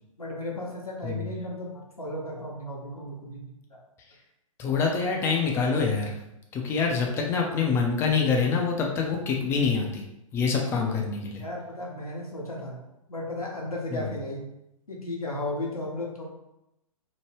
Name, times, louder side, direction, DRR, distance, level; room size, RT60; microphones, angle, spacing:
voice 1, 0.2-3.8 11.4-12.8 13.1-14.5 14.9-16.2, left 1 dB, 85° left, -2 dB, 0.9 m, -35 dB
voice 2, 4.6-6.1 6.5-10.0 10.3-11.4 13.9-14.0, left 5 dB, 15° left, 0 dB, 0.4 m, -25 dB
3.0 x 2.1 x 3.2 m, 0.85 s
figure-of-eight pair, 115°, 18 cm